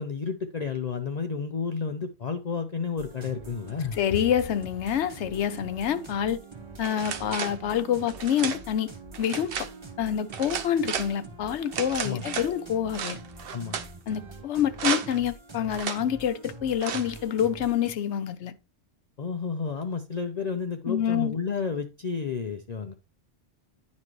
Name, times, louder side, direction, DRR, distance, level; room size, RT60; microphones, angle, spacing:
voice 1, 0.0-4.0 12.0-12.5 13.5-13.8 19.2-23.0, left 5 dB, 45° left, 0.6 m, -31 dB
sound 1, 3.0-17.9, right 2 dB, 25° right, 1.0 m, -45 dB
voice 2, 4.0-6.4 6.8-8.9 9.2-9.5 10.0-13.2 14.1-18.5 20.9-21.3, left 9 dB, 90° left, 1.0 m, -27 dB
sound 2, 6.8-7.6 8.1-8.6 9.1-9.7 10.3-11.1 11.7-12.5 12.9-13.9 14.7-15.2 15.7-16.0 16.8-17.2, right 7 dB, 60° right, 0.9 m, -33 dB
9.8 x 5.3 x 3.1 m
omnidirectional pair, 1.1 m